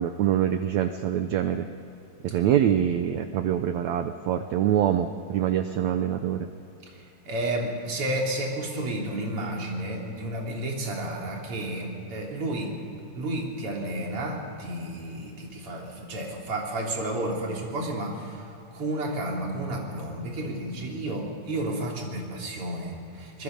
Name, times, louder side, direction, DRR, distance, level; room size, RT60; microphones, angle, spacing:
voice 1, 0.0-1.7 2.2-6.5, right 10 dB, 90° right, 8 dB, 1.6 m, -25 dB
voice 2, 7.3-12.7 13.2-18.4 18.7-23.4, right 1 dB, 40° right, -1 dB, 3.9 m, -31 dB
25.5 x 20.5 x 5.3 m, 2.8 s
omnidirectional pair, 4.3 m